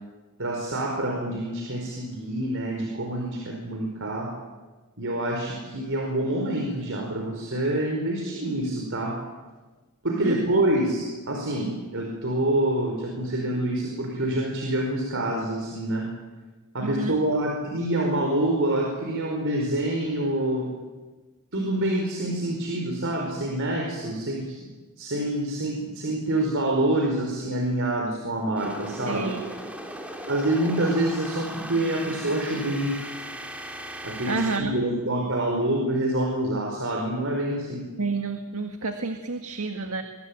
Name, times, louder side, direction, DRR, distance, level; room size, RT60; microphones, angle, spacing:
voice 1, 0.4-4.3 5.0-9.2 10.0-16.1 16.7-20.7 21.5-24.6 25.0-29.3 30.2-33.1 34.0-37.9, right 1 dB, 60° right, 1 dB, 4.8 m, -26 dB
voice 2, 10.2-10.6 16.8-17.2 29.1-29.4 30.1-30.3 34.3-34.8 38.0-40.0, right 3 dB, 80° right, 6 dB, 1.7 m, -29 dB
sound 1, 28.6-34.6, right 1 dB, 5° right, 3.3 m, -38 dB
25.0 x 23.5 x 8.9 m, 1.3 s
head